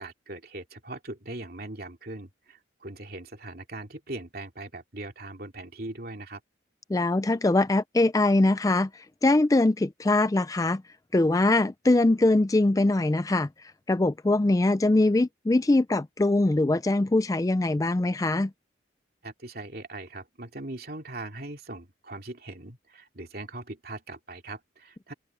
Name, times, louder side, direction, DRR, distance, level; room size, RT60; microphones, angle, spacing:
voice 1, 0.0-6.4 19.2-25.1, right 2 dB, 50° right, 2.9 m, -40 dB
voice 2, 6.9-10.8 11.1-13.5 13.9-18.5, left 2 dB, 20° left, 0.3 m, -22 dB
open air
head